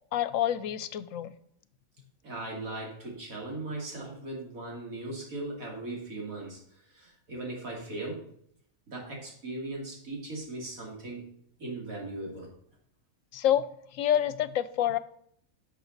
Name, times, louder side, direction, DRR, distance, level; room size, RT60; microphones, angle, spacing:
voice 1, 0.1-1.3 13.3-13.6 13.9-15.0, left 11 dB, 75° left, 15 dB, 0.9 m, -27 dB
voice 2, 2.2-8.3 8.9-11.3 11.6-12.5, right 2 dB, 80° right, -1 dB, 3.0 m, -38 dB
11.0 x 6.2 x 4.0 m, 0.67 s
omnidirectional pair, 1.4 m